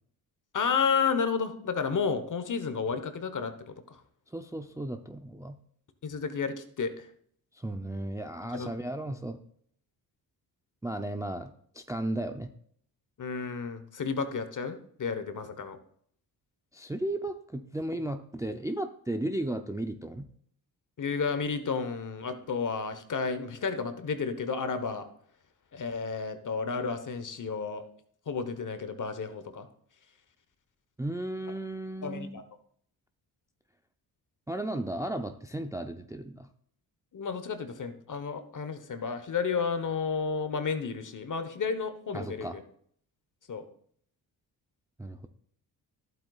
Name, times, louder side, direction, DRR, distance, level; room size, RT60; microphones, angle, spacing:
voice 1, 0.5-4.0 6.0-7.1 8.4-8.7 13.2-15.8 21.0-25.1 25.7-27.8 28.3-29.7 32.0-32.4 37.1-42.6 43.5-43.7, left 5 dB, 45° left, 10 dB, 1.1 m, -32 dB
voice 2, 4.3-5.6 7.5-9.4 10.8-12.5 16.7-20.3 31.0-32.4 34.5-36.5 42.1-42.6 45.0-45.3, right 1 dB, 5° right, 7 dB, 0.5 m, -35 dB
11.5 x 7.9 x 2.4 m, 0.62 s
supercardioid pair, 55°, 44 cm